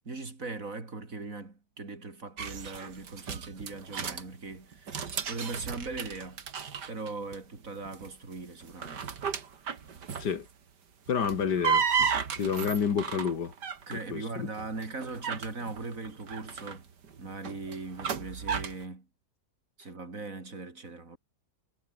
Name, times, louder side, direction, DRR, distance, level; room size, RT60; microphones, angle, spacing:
voice 1, 0.0-6.4 6.9-9.1 13.9-16.9 17.2-19.1 19.8-21.2, right 3 dB, 50° right, 4.3 m, -40 dB
sound 1, 2.4-4.2 4.7-7.4 7.6-8.1 8.6-10.4 11.1-14.0 14.6-18.8, right 6 dB, 85° right, 2.6 m, -33 dB
voice 2, 11.1-11.9 12.4-13.5 14.1-14.5, left 7 dB, 80° left, 2.4 m, -29 dB
omnidirectional pair, 1.8 m